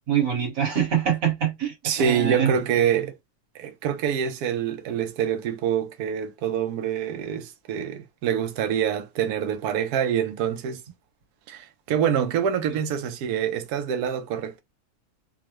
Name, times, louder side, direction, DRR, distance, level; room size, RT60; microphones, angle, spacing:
voice 1, 0.1-2.5, right 8 dB, 60° right, 1.9 m, -24 dB
voice 2, 1.8-3.1 3.6-10.8 11.5-14.6, right 8 dB, 75° right, 1.1 m, -26 dB
3.5 x 2.0 x 2.9 m
omnidirectional pair, 1.7 m